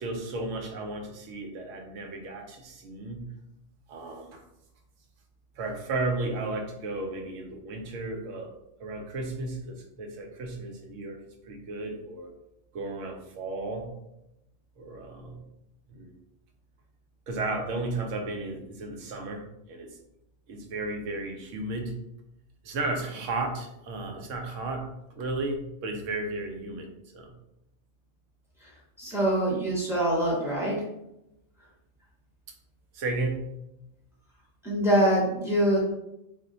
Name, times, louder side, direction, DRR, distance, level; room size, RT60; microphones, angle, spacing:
voice 1, 0.0-3.2 3.9-4.4 5.6-8.5 8.8-12.3 12.7-13.9 14.8-15.4 15.9-16.1 17.3-20.0 20.5-21.9 22.6-26.9 27.1-27.3 32.9-33.5, right 2 dB, 85° right, 3 dB, 1.0 m, -34 dB
voice 2, 29.0-30.8 34.6-35.8, right 1 dB, 5° right, -5 dB, 0.7 m, -24 dB
2.4 x 2.1 x 3.8 m, 0.86 s
omnidirectional pair, 1.3 m